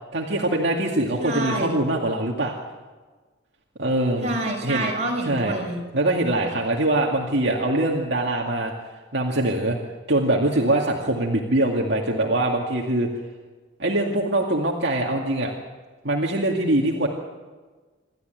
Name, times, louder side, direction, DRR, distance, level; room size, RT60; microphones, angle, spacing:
voice 1, 0.1-2.6 3.8-4.3 4.6-4.9 5.2-5.5 5.9-8.7 9.1-9.8 10.1-13.1 13.8-15.5 16.0-17.1, right 1 dB, 65° right, -1 dB, 2.3 m, -23 dB
voice 2, 1.2-1.8 4.2-5.8, right 2 dB, 35° right, -1 dB, 6.1 m, -27 dB
27.5 x 13.5 x 9.3 m, 1.3 s
head